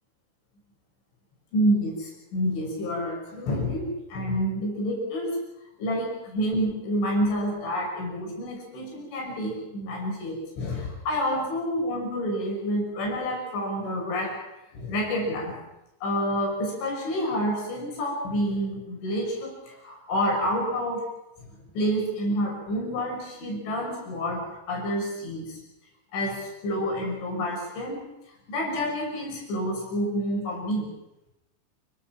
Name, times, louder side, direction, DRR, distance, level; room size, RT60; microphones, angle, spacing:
voice 1, 1.5-5.4 5.8-14.3 14.7-15.6 16.0-21.0 21.4-25.6 26.1-28.0 28.5-30.9, equal, 85° left, 0 dB, 8.5 m, -28 dB
29.0 x 18.5 x 5.9 m, 0.90 s
omnidirectional pair, 5.3 m